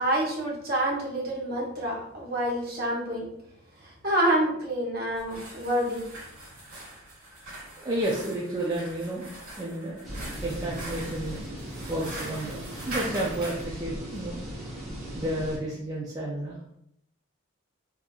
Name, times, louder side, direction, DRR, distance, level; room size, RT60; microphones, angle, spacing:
voice 1, 0.0-3.3 3.8-6.1, right 1 dB, 45° right, -3 dB, 0.9 m, -27 dB
sound 1, 5.1-13.7, right 1 dB, 75° right, 1.4 m, -42 dB
voice 2, 7.8-9.3 9.6-10.1 10.4-11.4 11.9-14.4 15.1-16.8, right 1 dB, 15° right, -5 dB, 0.4 m, -31 dB
sound 2, 10.0-15.6, right 1 dB, ahead, 0.9 m, -38 dB
3.7 x 2.8 x 2.4 m, 0.75 s
head